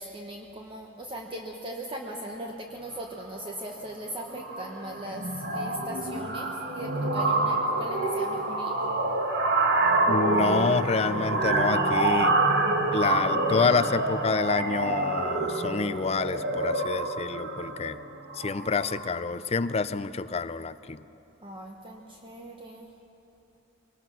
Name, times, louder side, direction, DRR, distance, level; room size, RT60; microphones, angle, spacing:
voice 1, 0.0-8.8 21.4-22.9, right 1 dB, 25° right, 1 dB, 1.1 m, -39 dB
sound 1, 3.2-3.5 3.8-4.1 4.3-19.2, right 2 dB, 55° right, 1.5 m, -27 dB
voice 2, 10.1-12.4 12.9-18.0 18.3-21.0, left 4 dB, 30° left, 13 dB, 0.5 m, -28 dB
22.0 x 19.0 x 6.2 m, 2.9 s
head